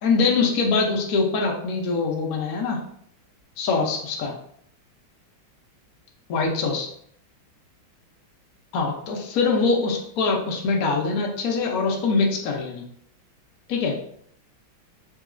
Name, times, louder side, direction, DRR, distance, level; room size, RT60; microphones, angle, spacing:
voice 1, 0.0-2.8 3.6-4.3 6.3-6.9 8.7-12.8 13.7-13.9, left 4 dB, 85° left, 0 dB, 0.7 m, -23 dB
3.9 x 2.7 x 2.5 m, 0.66 s
omnidirectional pair, 2.3 m